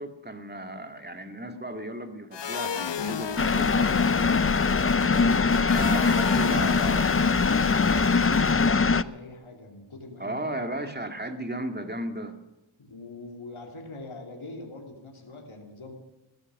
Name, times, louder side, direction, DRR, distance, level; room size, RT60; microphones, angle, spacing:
voice 1, 0.0-4.4 5.7-7.6 10.2-12.4, right 1 dB, 20° right, 6 dB, 2.2 m, -35 dB
sound 1, 2.3-8.9, left 8 dB, 60° left, 0.7 m, -34 dB
sound 2, 3.4-9.0, left 4 dB, 30° left, 0.6 m, -22 dB
voice 2, 5.5-10.5 12.8-15.9, left 2 dB, 85° left, 1 dB, 2.8 m, -43 dB
16.5 x 13.5 x 6.1 m, 1.0 s
wide cardioid pair, 50°, 47 cm